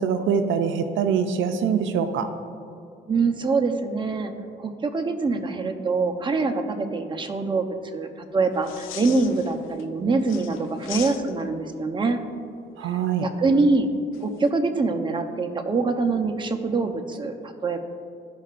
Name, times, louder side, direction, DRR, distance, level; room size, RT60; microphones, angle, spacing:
voice 1, 0.0-2.3 12.8-13.3, right 7 dB, 75° right, 8 dB, 0.5 m, -24 dB
voice 2, 3.1-4.3 4.6-7.7 7.9-12.2 12.8-13.9 14.2-17.8, right 3 dB, 25° right, 5 dB, 0.8 m, -24 dB
sound 1, 8.5-9.8 10.2-11.6 14.1-14.5, left 12 dB, 85° left, 0.4 m, -39 dB
14.0 x 5.6 x 2.5 m, 2.4 s
cardioid pair, 90°, 20 cm